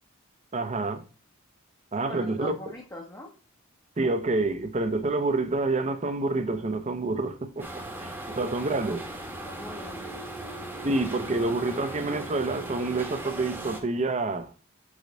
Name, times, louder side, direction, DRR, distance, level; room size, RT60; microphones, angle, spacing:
voice 1, 0.5-1.0 1.9-2.5 4.0-7.7 8.0-9.0 10.8-14.5, right 2 dB, 35° right, 0.6 m, -28 dB
voice 2, 2.0-3.3 8.7-8.8 9.4-10.2, left 1 dB, 15° left, 0.8 m, -42 dB
sound 1, 7.6-13.8, right 1 dB, 10° right, 1.0 m, -38 dB
4.9 x 3.9 x 5.1 m
head